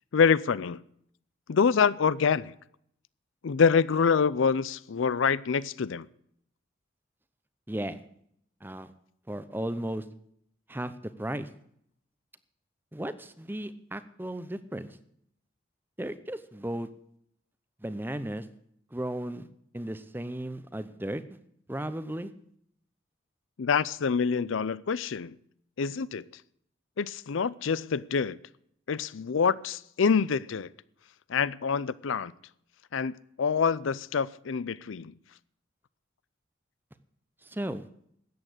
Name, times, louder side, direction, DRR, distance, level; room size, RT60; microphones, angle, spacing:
voice 1, 0.1-0.8 1.5-2.6 3.4-6.1 23.6-25.4 25.8-26.2 27.0-28.4 28.9-30.7 31.3-32.3 32.9-33.1 33.4-35.1, left 6 dB, 70° left, 0.5 m, -26 dB
voice 2, 7.7-8.0 8.6-8.9 9.3-10.0 10.7-10.9 11.2-11.5 12.9-15.0 16.0-16.9 17.8-18.4 18.9-19.5 19.7-21.2 21.7-22.3 37.5-37.9, right 1 dB, 10° right, 0.7 m, -35 dB
13.5 x 9.0 x 8.0 m
head